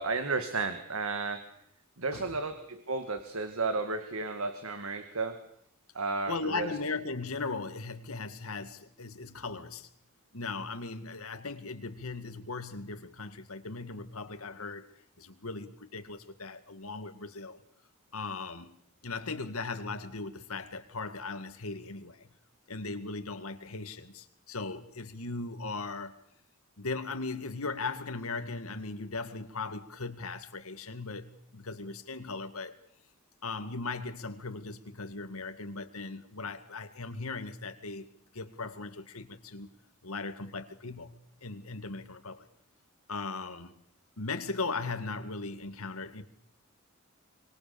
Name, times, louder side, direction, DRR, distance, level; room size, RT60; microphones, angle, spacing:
voice 1, 0.0-1.5 2.0-5.4 6.0-6.7, right 3 dB, 75° right, 1.9 m, -33 dB
voice 2, 2.1-2.5 6.3-9.9 10.3-14.9 15.2-17.6 18.1-18.8 19.0-22.3 22.7-26.2 26.8-32.8 33.4-38.1 38.3-39.7 40.0-42.5 43.1-43.7 44.2-46.2, left 3 dB, 80° left, 2.0 m, -38 dB
27.5 x 24.5 x 7.0 m
head